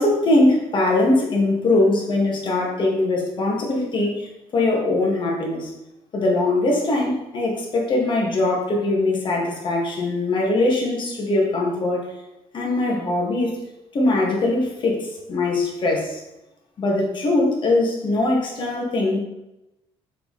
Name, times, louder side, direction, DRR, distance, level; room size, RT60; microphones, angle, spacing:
voice 1, 0.0-5.7 6.1-12.1 12.5-13.6 13.9-16.2 16.8-19.2, left 2 dB, 45° left, -1 dB, 2.2 m, -21 dB
6.6 x 5.3 x 4.2 m, 0.91 s
cardioid pair, 110°, 11 cm